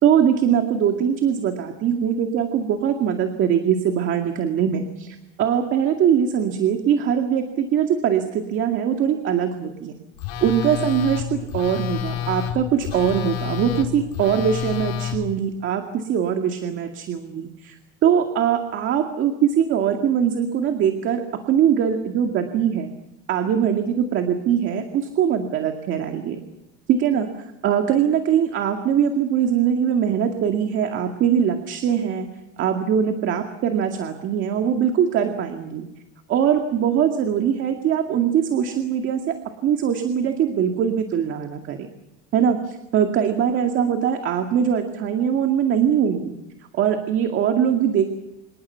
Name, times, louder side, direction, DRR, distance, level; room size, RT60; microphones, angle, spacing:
voice 1, 0.0-9.9 10.4-17.8 18.0-22.9 23.3-26.4 26.9-27.3 27.6-32.3 32.6-35.9 36.3-39.3 39.6-41.9 42.3-46.4 46.7-48.2, right 8 dB, 40° right, 5 dB, 2.2 m, -22 dB
Telephone, 10.2-15.2, left 10 dB, 80° left, 4.7 m, -29 dB
27.0 x 24.0 x 5.8 m, 0.92 s
cardioid pair, 160°, 30 cm